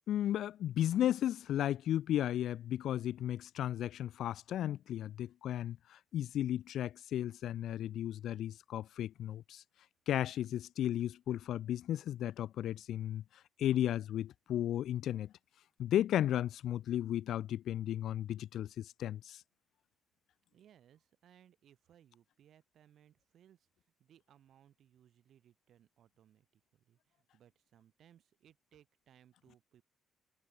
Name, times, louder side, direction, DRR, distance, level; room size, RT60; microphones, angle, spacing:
voice 1, 0.1-9.6 10.1-13.2 13.6-15.3 15.8-19.4, left 11 dB, 75° left, 0.3 m, -34 dB
voice 2, 20.5-29.8, right 10 dB, 70° right, 3.9 m, -65 dB
cardioid pair, 90°, 0 cm